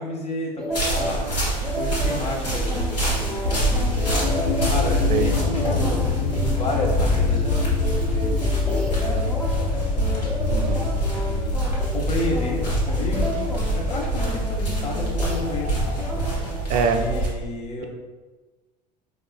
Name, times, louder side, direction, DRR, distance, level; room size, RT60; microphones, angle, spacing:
voice 1, 0.0-1.3 1.7-4.3 4.7-11.5 11.9-16.3 16.7-17.9, left 1 dB, 30° left, 0 dB, 0.9 m, -32 dB
sound 1, 0.6-1.3 1.6-9.6 10.0-11.3 11.5-12.0 12.3-15.7 16.0-16.6 17.0-17.2, right 1 dB, 5° left, 0.8 m, -33 dB
sound 2, 0.7-17.3, right 2 dB, 90° left, 1.3 m, -27 dB
sound 3, 3.4-16.0, left 4 dB, 50° left, 1.1 m, -26 dB
voice 2, 10.5-10.9 16.7-17.0, right 6 dB, 40° right, 5 dB, 0.4 m, -23 dB
4.7 x 2.5 x 2.2 m, 1.3 s
figure-of-eight pair, 70°, 21 cm